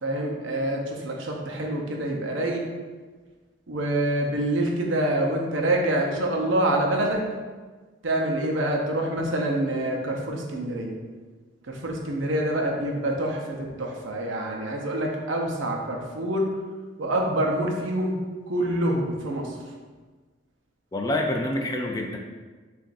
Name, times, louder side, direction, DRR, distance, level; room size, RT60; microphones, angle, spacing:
voice 1, 0.0-2.6 3.7-7.2 8.0-11.0 11.7-16.5 17.0-18.1 18.5-19.5, right 1 dB, 85° right, 0 dB, 0.7 m, -26 dB
voice 2, 20.9-22.2, left 1 dB, 20° left, 2 dB, 0.3 m, -27 dB
7.0 x 2.6 x 2.6 m, 1.4 s
head